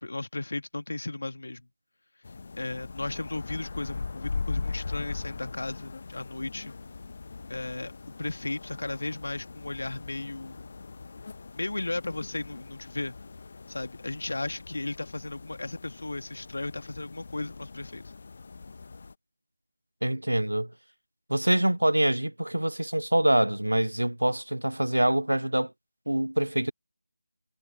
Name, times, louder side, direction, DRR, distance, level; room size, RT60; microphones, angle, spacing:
voice 1, 0.0-1.6 2.5-6.7 7.5-7.9 8.2-10.7 11.5-13.2 13.7-18.0, left 2 dB, 60° left, 2.1 m, -35 dB
sound 1, 2.2-19.1, left 4 dB, 40° left, 1.1 m, -40 dB
voice 2, 20.0-20.7 21.3-25.7 26.1-26.7, right 1 dB, 80° right, 0.4 m, -25 dB
figure-of-eight pair, 160°, 0 cm